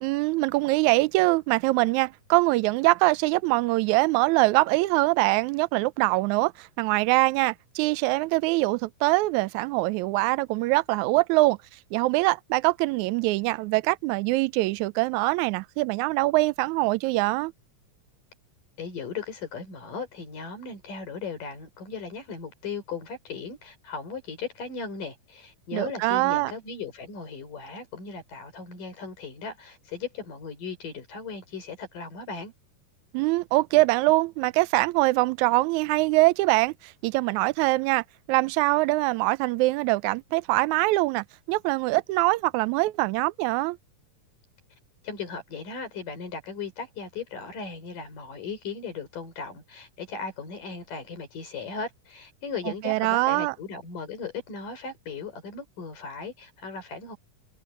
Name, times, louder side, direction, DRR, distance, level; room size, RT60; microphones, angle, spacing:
voice 1, 0.0-11.6 11.9-17.5 25.7-26.5 33.1-43.8 52.8-53.6, right 21 dB, 80° right, 1.8 m, -23 dB
voice 2, 18.8-32.5 45.0-57.2, left 5 dB, 80° left, 6.6 m, -37 dB
omnidirectional pair, 3.8 m